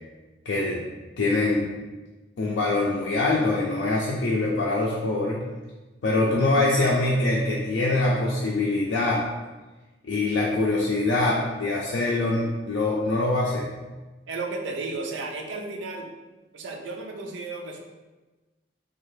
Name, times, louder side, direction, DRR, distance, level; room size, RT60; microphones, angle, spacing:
voice 1, 0.5-0.8 1.2-1.7 2.4-5.4 6.0-9.2 10.0-13.6, left 2 dB, 75° left, -5 dB, 0.4 m, -24 dB
voice 2, 14.3-16.1 16.5-17.8, right 3 dB, 85° right, 2 dB, 0.5 m, -33 dB
3.1 x 2.3 x 3.1 m, 1.2 s
head